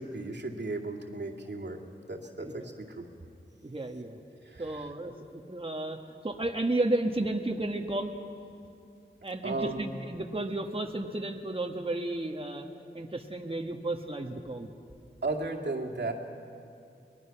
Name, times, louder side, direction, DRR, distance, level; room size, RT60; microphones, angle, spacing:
voice 1, 0.0-1.8 2.1-3.1 4.4-4.9 9.4-9.9 15.2-16.1, right 2 dB, 60° right, 0 dB, 2.3 m, -35 dB
voice 2, 3.6-4.2 4.6-8.1 9.2-12.7 12.9-14.7, right 2 dB, 30° right, 3 dB, 1.5 m, -33 dB
23.0 x 19.5 x 5.9 m, 2.5 s
cardioid pair, 40°, 20 cm